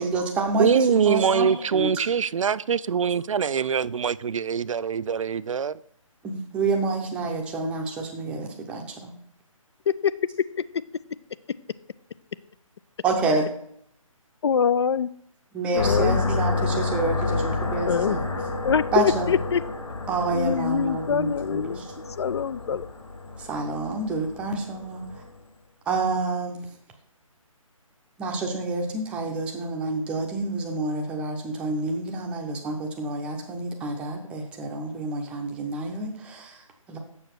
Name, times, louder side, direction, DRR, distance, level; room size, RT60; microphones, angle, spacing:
voice 1, 0.0-1.9 6.2-9.1 13.0-13.5 15.5-18.2 18.9-19.3 20.1-21.9 23.4-25.2 25.9-26.6 28.2-37.0, right 3 dB, 5° right, 0.7 m, -28 dB
voice 2, 0.6-5.8, right 7 dB, 65° right, 0.4 m, -23 dB
voice 3, 14.4-15.1 15.7-16.2 17.9-18.2 18.6-19.6 20.3-21.8 22.2-22.9, left 7 dB, 50° left, 0.4 m, -24 dB
sound 1, 15.8-25.3, left 3 dB, 70° left, 2.0 m, -30 dB
7.0 x 6.3 x 5.9 m
figure-of-eight pair, 155°, 18 cm